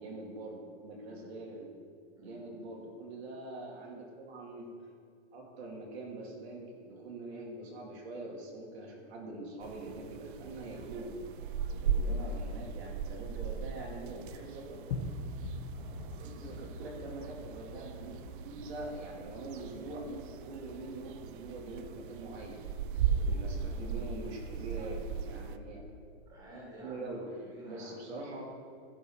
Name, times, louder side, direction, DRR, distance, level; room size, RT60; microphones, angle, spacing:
voice 1, 0.0-1.7 2.2-4.7 5.3-11.2 11.8-14.8 16.2-18.2 18.4-22.6 23.3-25.9 26.8-27.2 27.7-28.4, right 2 dB, 70° right, -1 dB, 2.1 m, -44 dB
sound 1, 9.6-25.6, right 6 dB, 50° right, 0.5 m, -38 dB
voice 2, 11.7-12.7 15.7-16.2 23.0-24.0 26.3-28.0, right 1 dB, 10° right, -5 dB, 2.2 m, -51 dB
sound 2, 14.4-24.1, left 2 dB, 65° left, 1.2 m, -46 dB
11.5 x 5.6 x 4.5 m, 2.3 s
supercardioid pair, 160°, 33 cm